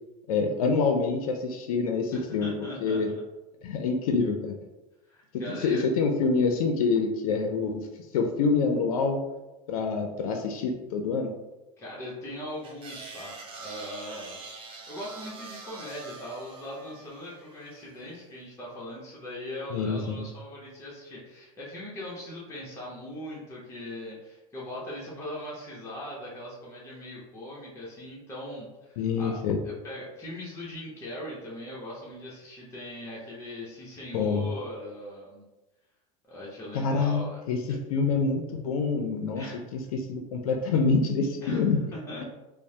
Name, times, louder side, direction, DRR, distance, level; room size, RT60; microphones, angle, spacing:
voice 1, 0.3-2.5 2.8-3.1 3.6-4.5 5.5-7.9 8.1-9.2 9.7-11.3 19.7-20.2 29.0-29.6 34.1-34.5 36.7-37.2 37.5-39.4 39.7-41.8, left 4 dB, 85° left, 4 dB, 0.4 m, -26 dB
voice 2, 2.1-3.2 5.1-5.8 11.8-13.3 13.6-14.4 14.9-29.4 29.6-35.4 36.3-37.4 39.3-39.6 41.4-42.2, left 1 dB, 15° left, -6 dB, 0.8 m, -40 dB
sound 1, 12.6-18.0, right 4 dB, 30° right, 0.6 m, -44 dB
3.0 x 2.0 x 2.7 m, 1.1 s
supercardioid pair, 110°, 18 cm